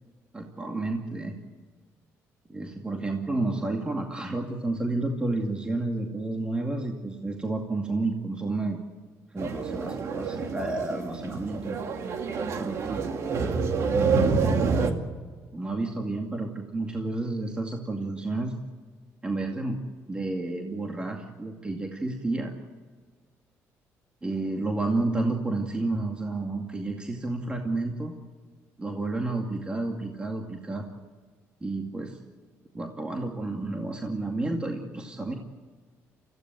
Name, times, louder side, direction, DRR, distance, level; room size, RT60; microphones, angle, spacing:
voice 1, 0.3-1.3 2.5-8.8 9.3-11.8 12.6-13.1 13.9-15.0 15.5-18.6 19.2-19.8 20.1-22.5 24.2-28.1 28.8-30.9 31.6-32.2 32.7-35.3, right 2 dB, 15° right, 2 dB, 2.3 m, -31 dB
sound 1, 9.4-14.9, right 5 dB, 60° right, 2.3 m, -27 dB
25.0 x 16.0 x 9.2 m, 1.5 s
cardioid pair, 110°, 6 cm